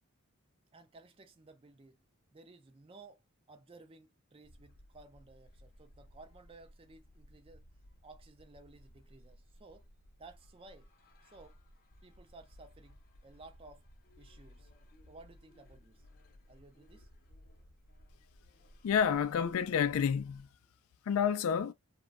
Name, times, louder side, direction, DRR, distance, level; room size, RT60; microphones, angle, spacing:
voice 1, 0.7-2.0 2.3-3.2 3.5-7.6 8.0-9.8 10.2-10.9 11.2-11.6 12.0-13.9 14.2-14.7 15.1-16.1 16.5-17.1, right 3 dB, 25° right, 0.4 m, -56 dB
sound 1, 4.4-20.5, equal, 40° left, 0.7 m, -59 dB
voice 2, 18.8-20.5 21.1-21.7, left 7 dB, 70° left, 0.3 m, -29 dB
3.0 x 2.2 x 2.4 m
head